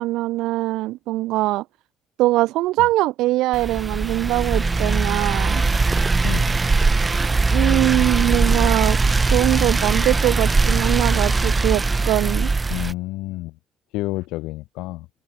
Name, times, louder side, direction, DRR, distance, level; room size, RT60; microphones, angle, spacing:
voice 1, 0.0-1.6 2.2-5.6 7.5-9.0 9.3-12.5, right 17 dB, 85° right, 1.4 m, -22 dB
sound 1, 3.5-12.9, right 3 dB, 20° right, 0.3 m, -20 dB
voice 2, 6.2-6.6 12.7-13.6 13.9-15.1, left 19 dB, 90° left, 4.9 m, -29 dB
cardioid pair, 100°, 0 cm